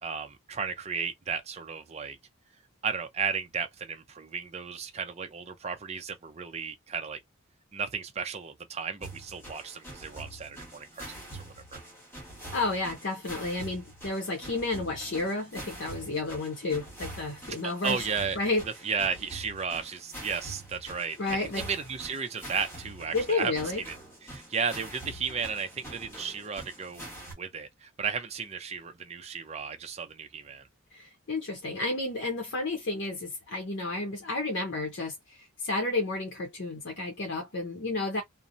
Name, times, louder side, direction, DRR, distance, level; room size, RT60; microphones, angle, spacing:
voice 1, 0.0-2.2 2.8-7.2 7.7-11.8 17.5-18.4 18.8-24.0 24.3-27.1 27.4-30.7, right 6 dB, 30° right, 0.5 m, -34 dB
sound 1, 9.0-27.3, right 1 dB, 10° left, 1.1 m, -45 dB
voice 2, 12.5-18.1 18.4-18.6 21.2-21.7 23.1-23.8 30.9-38.2, left 2 dB, 55° left, 0.7 m, -31 dB
2.8 x 2.0 x 2.5 m
head